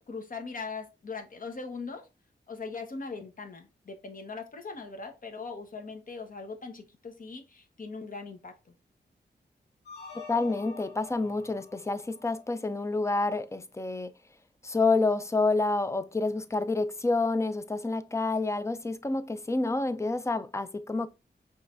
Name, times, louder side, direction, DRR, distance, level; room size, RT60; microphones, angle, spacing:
voice 1, 0.1-2.0 2.5-8.7, left 4 dB, 50° left, 1.0 m, -40 dB
sound 1, 9.8-13.0, left 5 dB, 65° left, 2.1 m, -47 dB
voice 2, 10.3-14.1 14.6-21.1, left 3 dB, 15° left, 0.4 m, -28 dB
5.5 x 3.1 x 2.5 m
wide cardioid pair, 100°, 18 cm